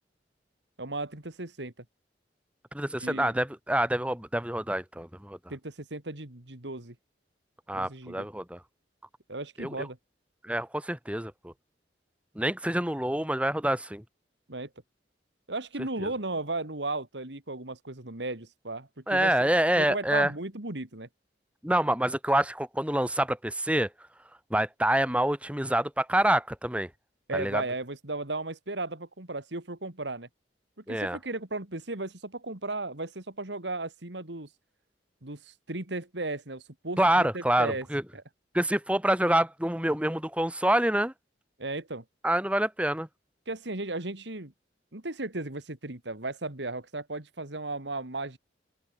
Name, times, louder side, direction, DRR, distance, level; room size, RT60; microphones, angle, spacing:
voice 1, 0.8-1.7 3.0-3.3 5.5-6.9 7.7-8.3 9.3-10.0 14.5-14.7 15.5-19.3 19.8-21.1 27.3-30.3 30.8-34.5 35.2-37.9 38.1-38.2 41.6-42.0 43.5-44.5 44.9-48.4, right 2 dB, 80° right, 2.9 m, -35 dB
voice 2, 2.7-5.4 7.7-8.6 9.6-9.9 10.4-11.5 12.4-14.0 16.0-16.1 19.1-20.3 21.6-23.9 24.5-26.9 27.3-27.6 30.9-31.2 37.0-38.0 38.5-41.1 42.2-43.1, right 1 dB, 5° right, 3.6 m, -26 dB
open air
head